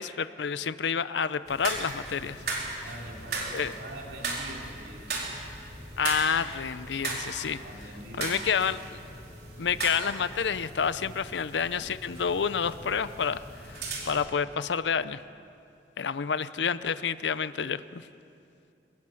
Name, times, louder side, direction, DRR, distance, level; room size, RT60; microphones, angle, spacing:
voice 1, 0.0-2.4 2.7-2.8 3.5-3.7 6.0-7.6 8.2-8.8 9.6-15.2 16.0-18.1, left 6 dB, 85° left, 14 dB, 0.6 m, -29 dB
sound 1, 1.5-14.3, right 3 dB, 60° right, 4.5 m, -37 dB
voice 2, 2.8-5.3 7.5-8.7 9.5-9.8, right 1 dB, 80° right, 0 dB, 3.3 m, -44 dB
23.5 x 20.0 x 7.7 m, 2.6 s
head